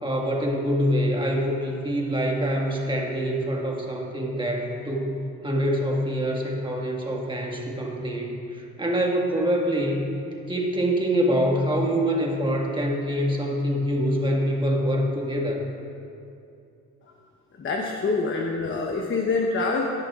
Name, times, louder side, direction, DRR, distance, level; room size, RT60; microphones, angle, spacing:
voice 1, 0.0-10.1 10.5-15.6, equal, 15° right, -1 dB, 1.8 m, -25 dB
voice 2, 17.6-19.8, left 3 dB, 40° left, 0 dB, 1.0 m, -25 dB
17.0 x 10.5 x 2.5 m, 2.6 s
cardioid pair, 90°, 30 cm